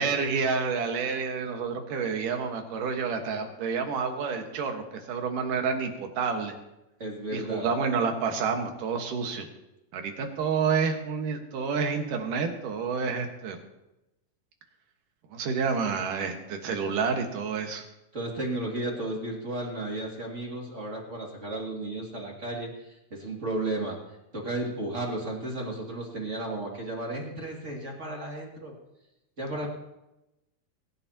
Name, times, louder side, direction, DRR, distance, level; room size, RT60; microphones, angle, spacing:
voice 1, 0.0-6.5 7.3-9.5 9.9-13.6 15.3-17.8, right 5 dB, 80° right, 4 dB, 3.1 m, -29 dB
voice 2, 7.0-7.7 18.1-24.0 24.3-28.7 29.4-29.7, right 2 dB, 25° right, -1 dB, 2.2 m, -33 dB
21.0 x 10.5 x 2.9 m, 0.94 s
omnidirectional pair, 3.7 m